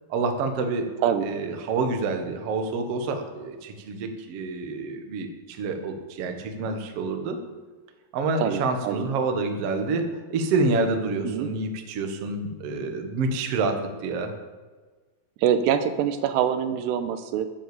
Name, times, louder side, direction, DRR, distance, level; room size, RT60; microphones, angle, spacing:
voice 1, 0.1-0.9 1.2-7.4 8.1-14.3, right 3 dB, 65° right, 5 dB, 1.5 m, -28 dB
voice 2, 8.4-9.1 11.2-11.5 15.4-17.5, right 9 dB, 85° right, 10 dB, 2.9 m, -24 dB
11.0 x 10.0 x 7.2 m, 1.4 s
omnidirectional pair, 4.9 m